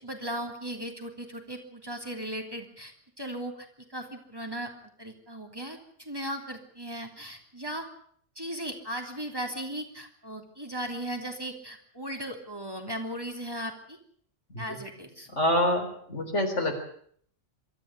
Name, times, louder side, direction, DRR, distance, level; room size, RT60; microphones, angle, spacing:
voice 1, 0.0-4.7 5.0-7.9 8.3-14.0 14.6-15.3, right 1 dB, 20° right, 3 dB, 3.2 m, -37 dB
voice 2, 15.4-16.7, left 1 dB, 75° left, 4 dB, 4.6 m, -26 dB
24.0 x 13.5 x 9.5 m, 0.62 s
omnidirectional pair, 1.2 m